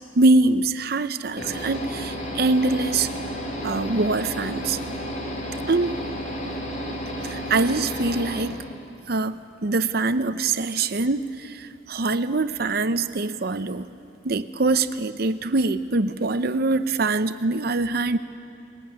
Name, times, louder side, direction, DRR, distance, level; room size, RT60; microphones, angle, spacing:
voice 1, 0.1-3.1 3.6-4.8 5.7-5.9 7.2-8.6 9.1-13.9 14.2-18.2, right 3 dB, 55° right, 12 dB, 0.7 m, -23 dB
sound 1, 1.4-8.4, equal, 40° left, 3.2 m, -32 dB
20.5 x 16.5 x 9.5 m, 2.7 s
head